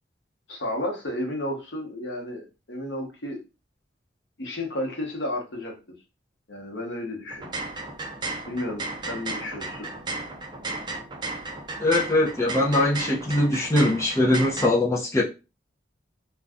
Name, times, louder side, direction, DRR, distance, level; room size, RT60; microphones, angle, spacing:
voice 1, 0.5-3.4 4.4-5.7 6.5-7.6 8.5-9.9, left 1 dB, 70° left, 1 dB, 0.9 m, -32 dB
sound 1, 7.3-14.7, right 3 dB, 25° right, 0.5 m, -34 dB
voice 2, 11.8-15.2, left 1 dB, 15° left, -4 dB, 0.6 m, -22 dB
2.6 x 2.2 x 3.5 m, 0.29 s
head